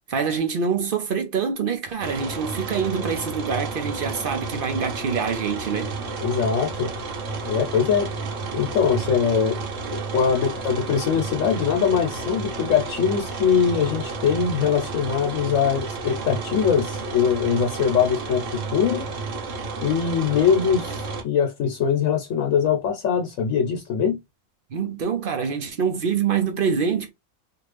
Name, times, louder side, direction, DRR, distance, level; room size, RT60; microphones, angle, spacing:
voice 1, 0.1-5.9 24.7-27.1, right 6 dB, 55° right, 0.7 m, -25 dB
sound 1, 2.0-21.2, right 4 dB, 70° right, 1.1 m, -31 dB
voice 2, 6.2-6.9 7.5-8.1 8.5-9.6 10.1-19.1 19.8-24.2, left 7 dB, 75° left, 1.1 m, -22 dB
2.8 x 2.5 x 3.2 m
omnidirectional pair, 1.4 m